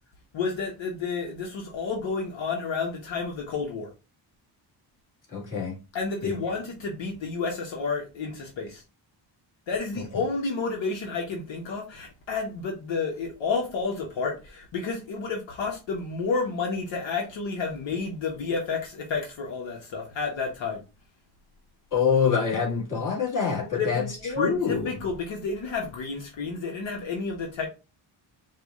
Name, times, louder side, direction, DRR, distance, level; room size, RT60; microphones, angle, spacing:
voice 1, 0.3-3.9 5.9-8.8 9.7-20.8 23.6-27.7, left 4 dB, 75° left, 1.2 m, -30 dB
voice 2, 5.3-5.8 6.2-6.5 10.0-10.1 21.9-24.9, left 6 dB, 45° left, 1.9 m, -26 dB
4.8 x 2.4 x 3.6 m
cardioid pair, 115°, 45 cm